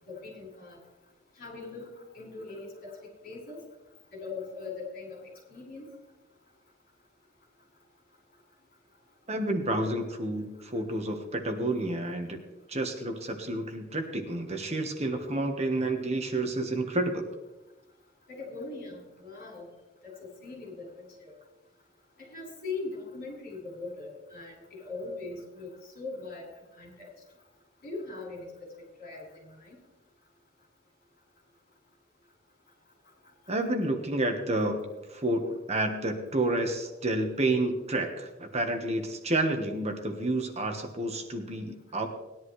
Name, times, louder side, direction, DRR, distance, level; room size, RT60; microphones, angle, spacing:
voice 1, 0.1-0.8 1.4-2.9 3.2-3.6 4.1-5.2 5.5-5.9 18.3-19.7 20.0-20.8 21.2-21.3 22.3-26.5 26.8-27.1 27.8-28.7 29.0-29.2 29.7-29.8, left 3 dB, 50° left, -2 dB, 5.5 m, -40 dB
voice 2, 9.3-12.4 12.7-17.2 33.5-42.1, right 1 dB, 35° right, 4 dB, 1.3 m, -30 dB
19.0 x 10.5 x 3.2 m, 1.1 s
head